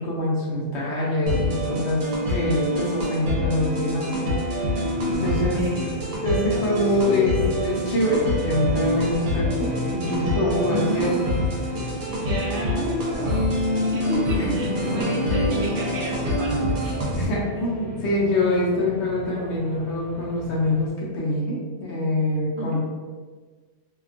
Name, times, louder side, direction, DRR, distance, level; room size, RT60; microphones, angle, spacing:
voice 1, 0.0-4.7 5.1-5.6 6.2-11.1 14.4-14.7 17.1-22.8, left 1 dB, 60° left, -5 dB, 0.8 m, -25 dB
sound 1, 1.3-17.3, equal, 70° right, 1.1 m, -26 dB
sound 2, 4.6-20.9, left 2 dB, 80° left, 1.1 m, -36 dB
voice 2, 5.5-6.1 10.7-11.1 12.2-13.6 13.9-16.5 16.8-16.9 17.2-17.3 22.5-22.8, equal, 55° right, -4 dB, 0.9 m, -31 dB
2.8 x 2.2 x 2.4 m, 1.4 s
omnidirectional pair, 1.6 m